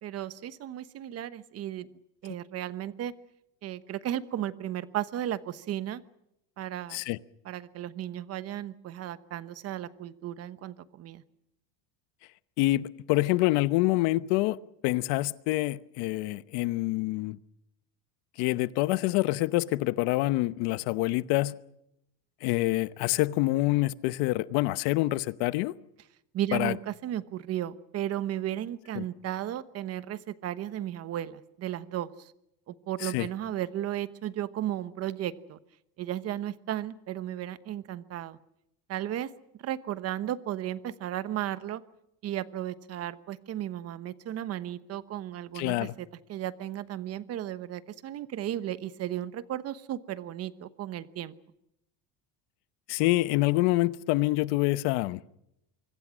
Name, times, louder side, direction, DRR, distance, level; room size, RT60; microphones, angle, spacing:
voice 1, 0.0-1.9 2.2-3.1 3.6-6.0 6.6-7.0 7.4-11.2 26.3-32.3 32.7-35.6 36.0-38.4 38.9-39.3 39.6-41.8 42.2-51.3, right 12 dB, 40° right, 1.1 m, -35 dB
voice 2, 12.6-14.6 14.8-17.4 18.4-21.5 22.4-25.7 26.5-26.8 28.9-29.0 33.0-33.3 45.5-45.9 52.9-55.2, left 19 dB, 80° left, 1.0 m, -26 dB
25.0 x 24.5 x 6.3 m
cardioid pair, 170°, 40 cm